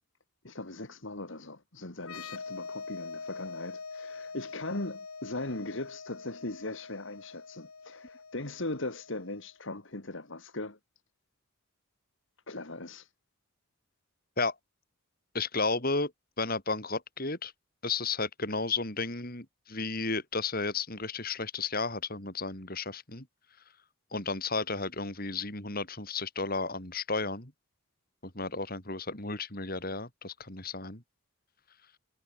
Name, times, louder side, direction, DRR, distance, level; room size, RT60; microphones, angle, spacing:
voice 1, 0.4-10.8 12.5-13.1, left 2 dB, 60° left, 2.2 m, -39 dB
sound 1, 2.0-9.5, left 4 dB, 85° left, 2.3 m, -44 dB
voice 2, 15.3-16.1 16.4-17.5 17.8-23.3 24.1-27.5 28.2-31.0, left 3 dB, 45° left, 4.7 m, -33 dB
head